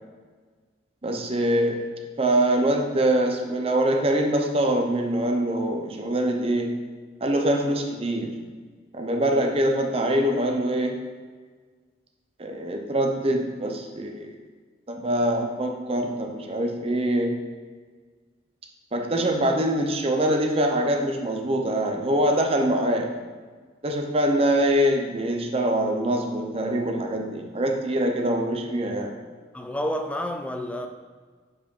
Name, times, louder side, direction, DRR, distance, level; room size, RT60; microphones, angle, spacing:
voice 1, 1.0-1.9 2.2-6.7 7.2-8.4 8.9-11.0 12.4-14.3 14.9-17.4 18.9-23.2 23.8-29.1, right 1 dB, 30° right, 3 dB, 0.7 m, -24 dB
voice 2, 29.5-30.9, equal, 5° left, 4 dB, 0.4 m, -29 dB
4.9 x 4.9 x 5.4 m, 1.5 s
head